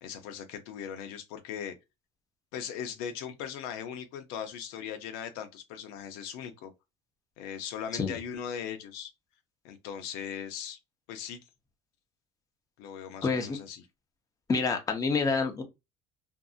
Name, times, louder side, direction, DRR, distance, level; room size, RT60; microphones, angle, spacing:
voice 1, 0.0-1.8 2.5-6.7 7.4-9.1 9.6-10.8 11.1-11.4 12.8-13.8, left 8 dB, 85° left, 0.6 m, -39 dB
voice 2, 13.2-13.6 14.5-15.6, left 4 dB, 25° left, 0.7 m, -27 dB
2.6 x 2.5 x 2.4 m
cardioid pair, 110°, 15 cm